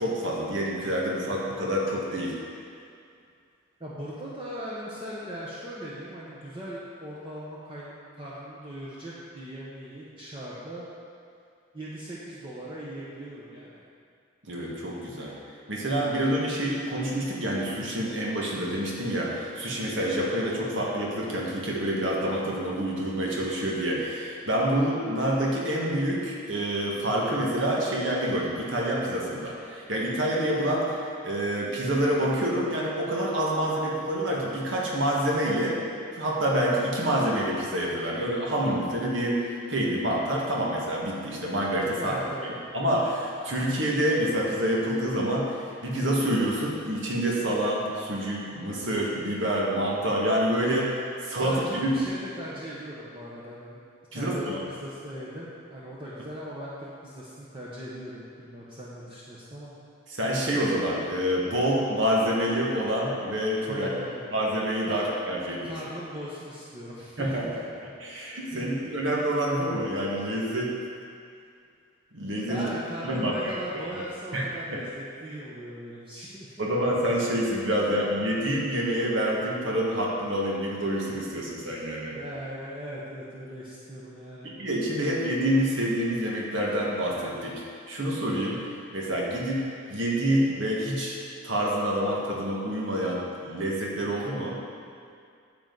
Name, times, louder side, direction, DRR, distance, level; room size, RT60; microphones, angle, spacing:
voice 1, 0.0-2.3 14.5-15.3 15.7-31.0 31.2-35.8 36.1-42.2 42.7-45.4 45.8-51.9 54.1-54.6 60.1-63.9 64.3-65.7 67.2-67.4 68.0-70.7 72.1-72.6 73.0-73.9 74.3-74.4 74.7-74.8 76.6-82.1 84.4-87.5 87.9-88.6 88.9-89.6 89.9-91.1 91.4-94.6, right 1 dB, 65° right, -4 dB, 1.7 m, -27 dB
voice 2, 3.8-10.9 11.7-13.8 41.9-42.5 51.4-53.8 54.1-59.7 63.7-64.2 64.9-65.0 65.6-67.6 68.5-68.8 72.5-76.7 77.8-77.9 82.1-84.5, equal, 25° right, -8 dB, 1.0 m, -39 dB
9.9 x 7.5 x 4.0 m, 2.3 s
head